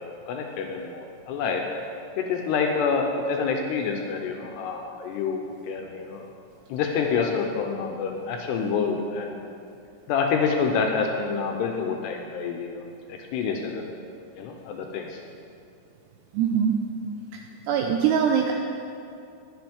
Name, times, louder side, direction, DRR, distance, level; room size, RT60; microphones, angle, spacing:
voice 1, 0.0-1.6 2.2-6.2 6.7-9.5 10.1-12.8 13.1-13.9 14.4-15.2, left 5 dB, 80° left, 2 dB, 2.5 m, -27 dB
voice 2, 16.3-16.8 17.3-18.5, right 7 dB, 90° right, 3 dB, 2.4 m, -23 dB
21.0 x 7.5 x 3.5 m, 2.5 s
omnidirectional pair, 5.4 m